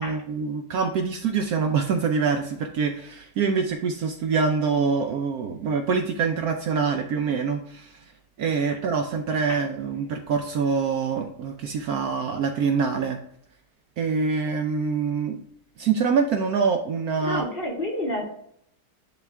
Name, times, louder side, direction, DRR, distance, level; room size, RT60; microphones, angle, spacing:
voice 1, 0.0-8.1 8.4-13.2 14.0-15.4 15.8-17.4, right 5 dB, 65° right, 4 dB, 1.0 m, -25 dB
voice 2, 17.2-18.2, left 1 dB, 30° left, -3 dB, 2.1 m, -30 dB
10.0 x 3.5 x 3.4 m, 0.69 s
omnidirectional pair, 1.9 m